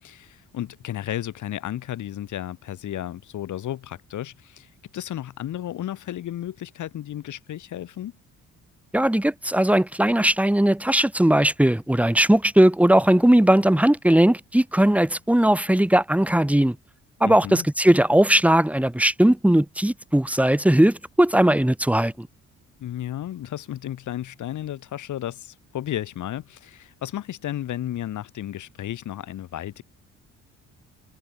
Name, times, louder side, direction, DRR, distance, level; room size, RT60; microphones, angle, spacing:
voice 1, 0.0-8.1 17.2-17.7 22.8-29.8, left 12 dB, 75° left, 8.0 m, -33 dB
voice 2, 8.9-16.8 17.2-22.3, right 1 dB, 5° right, 2.2 m, -19 dB
cardioid pair, 90°, 30 cm